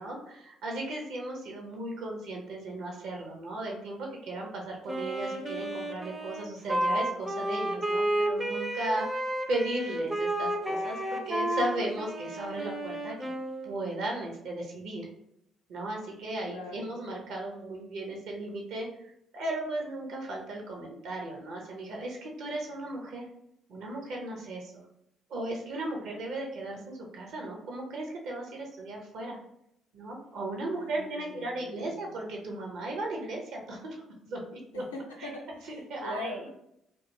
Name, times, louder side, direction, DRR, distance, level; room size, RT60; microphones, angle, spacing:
voice 1, 0.0-9.1 9.5-13.3 13.6-15.1 15.7-23.2 23.7-24.8 25.3-29.4 29.9-34.8 35.2-35.3 35.7-36.4, right 2 dB, 60° right, 0 dB, 0.7 m, -36 dB
Wind instrument woodwind instrument, 4.9-13.9, right 1 dB, 15° right, 0.5 m, -31 dB
voice 2, 16.5-16.9 26.0-26.1 30.7-32.2 34.7-36.5, left 2 dB, 80° left, -2 dB, 0.5 m, -42 dB
2.5 x 2.3 x 2.9 m, 0.77 s
figure-of-eight pair, 45°, 0 cm